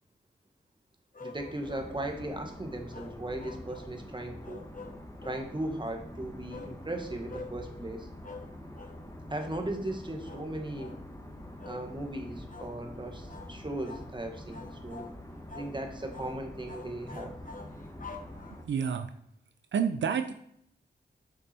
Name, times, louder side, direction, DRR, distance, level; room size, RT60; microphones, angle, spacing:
sound 1, 1.1-1.9 2.9-3.9 4.4-5.5 6.5-6.8 7.3-7.5 8.2-8.5 8.8-9.0 9.4-9.6 10.2-10.5 10.8-11.0 11.6-11.9 12.5-12.7 13.3-13.5 13.8-14.1 14.5-15.2 15.5-15.7 16.1-16.4 16.7-18.8, left 4 dB, 45° left, 1.2 m, -46 dB
voice 1, 1.2-4.6 5.2-8.1 9.3-10.9 11.6-15.1 15.5-17.4, right 1 dB, 25° right, 4 dB, 1.5 m, -37 dB
sound 2, 1.3-18.7, left 1 dB, 15° left, 1.4 m, -46 dB
voice 2, 18.7-19.1 19.7-20.3, right 7 dB, 80° right, 9 dB, 0.5 m, -29 dB
6.6 x 5.5 x 4.3 m, 0.70 s
cardioid pair, 50°, 19 cm